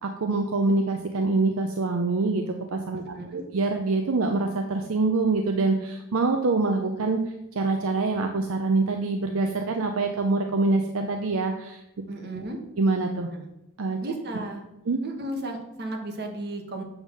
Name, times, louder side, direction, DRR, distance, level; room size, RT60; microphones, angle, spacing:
voice 1, 0.0-2.4 2.7-3.0 3.3-7.2 7.5-11.8 12.8-13.3 13.8-14.0 14.9-15.0, right 3 dB, 70° right, 4 dB, 0.6 m, -25 dB
voice 2, 2.9-3.4 12.1-12.6 13.3-13.4 14.0-14.6 15.0-16.8, right 1 dB, 50° right, 2 dB, 1.2 m, -34 dB
7.1 x 3.7 x 6.2 m, 0.90 s
head